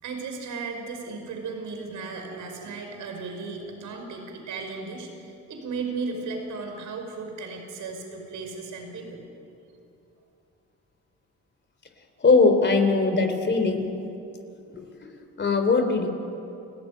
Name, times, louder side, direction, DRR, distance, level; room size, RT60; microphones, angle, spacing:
voice 1, 0.0-9.2, right 4 dB, 75° right, 4 dB, 5.5 m, -35 dB
voice 2, 12.2-13.9 14.7-14.8 15.4-16.1, left 3 dB, 35° left, 6 dB, 3.6 m, -20 dB
30.0 x 17.0 x 9.6 m, 2.8 s
cardioid pair, 90°, 30 cm